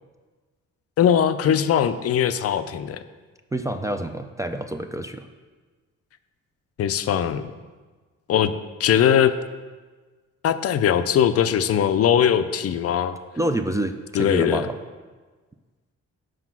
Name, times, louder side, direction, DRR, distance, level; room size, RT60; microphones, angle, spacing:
voice 1, 1.0-3.0 6.8-7.5 8.3-8.5 8.8-9.3 10.4-13.2 14.1-14.7, left 9 dB, 55° left, 11 dB, 0.5 m, -20 dB
voice 2, 3.5-5.3 13.4-14.8, right 1 dB, 10° right, 5 dB, 0.3 m, -27 dB
5.9 x 4.9 x 6.0 m, 1.4 s
cardioid pair, 90°, 30 cm